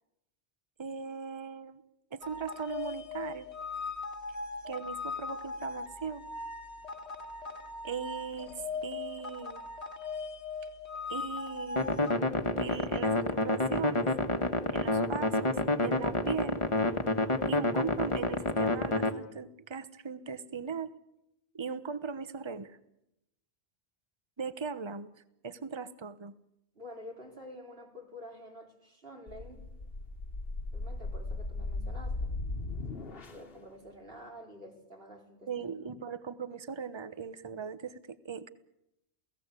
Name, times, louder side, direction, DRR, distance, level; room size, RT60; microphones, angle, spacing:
voice 1, 0.8-1.8 2.1-3.5 4.7-6.2 7.8-8.5 8.8-9.7 11.1-11.9 12.6-14.1 14.7-15.6 15.8-16.6 17.4-20.9 21.5-22.8 24.4-25.1 25.4-26.3 35.5-38.5, right 6 dB, 25° right, 13 dB, 1.0 m, -39 dB
sound 1, 2.2-12.2, left 4 dB, 75° left, 1.9 m, -39 dB
sound 2, 11.8-19.1, left 2 dB, 25° left, 1.6 m, -29 dB
voice 2, 26.7-29.6 30.7-32.3 33.3-35.7, left 1 dB, 55° right, 2 dB, 4.7 m, -49 dB
sound 3, 29.3-33.6, left 2 dB, 60° left, 1.7 m, -37 dB
29.0 x 17.5 x 8.3 m, 0.87 s
omnidirectional pair, 1.1 m